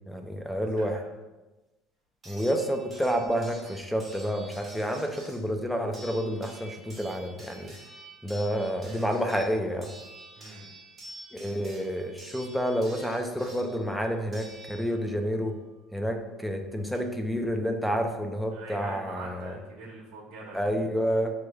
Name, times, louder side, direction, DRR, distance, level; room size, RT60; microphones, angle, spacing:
voice 1, 0.1-1.0 2.3-7.7 8.2-9.9 11.3-15.5 15.9-19.5 20.5-21.3, equal, ahead, 5 dB, 0.4 m, -29 dB
sound 1, 0.8-0.9 2.2-15.2 16.5-16.6 16.9-17.0, right 1 dB, 15° right, 1.5 m, -48 dB
voice 2, 10.4-10.7 18.5-20.7, right 3 dB, 70° right, -4 dB, 1.1 m, -43 dB
6.3 x 3.1 x 2.3 m, 1.1 s
cardioid pair, 145°, 0 cm